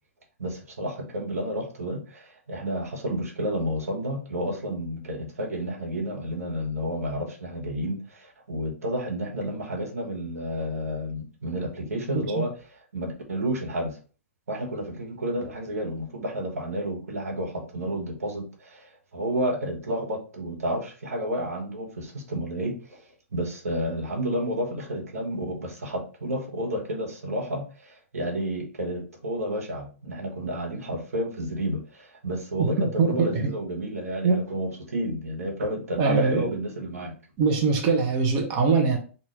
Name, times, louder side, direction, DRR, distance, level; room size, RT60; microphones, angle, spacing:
voice 1, 0.4-14.0 14.5-37.1, equal, 85° right, 1 dB, 1.3 m, -31 dB
voice 2, 32.8-33.4 34.2-34.4 36.0-36.5 37.4-39.0, right 4 dB, 35° right, 1 dB, 1.0 m, -22 dB
4.5 x 2.8 x 3.1 m, 0.37 s
hypercardioid pair, 135°, 8 cm